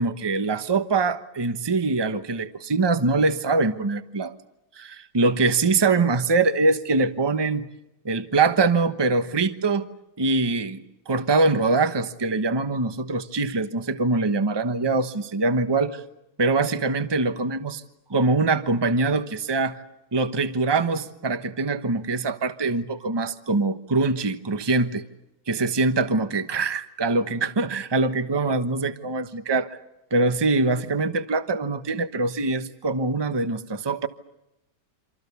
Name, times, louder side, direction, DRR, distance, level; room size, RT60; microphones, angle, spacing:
voice 1, 0.0-4.3 4.8-7.7 8.0-9.9 10.2-16.0 16.4-17.8 18.1-19.8 20.1-25.0 25.5-29.8 30.1-34.1, right 3 dB, 20° right, 10 dB, 0.7 m, -23 dB
27.5 x 26.5 x 7.0 m, 0.92 s
omnidirectional pair, 2.2 m